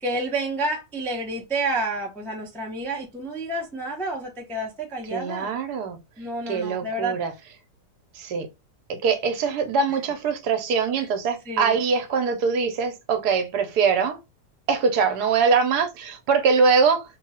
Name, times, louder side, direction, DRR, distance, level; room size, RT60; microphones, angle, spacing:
voice 1, 0.0-5.5 6.2-7.2 9.9-10.0 11.0-11.1 11.4-11.8, right 2 dB, 5° left, 0.4 m, -29 dB
voice 2, 5.1-6.0 6.5-7.3 8.1-8.5 8.9-14.2 14.7-17.0, right 5 dB, 75° right, 1.2 m, -23 dB
2.9 x 2.3 x 4.1 m
omnidirectional pair, 1.7 m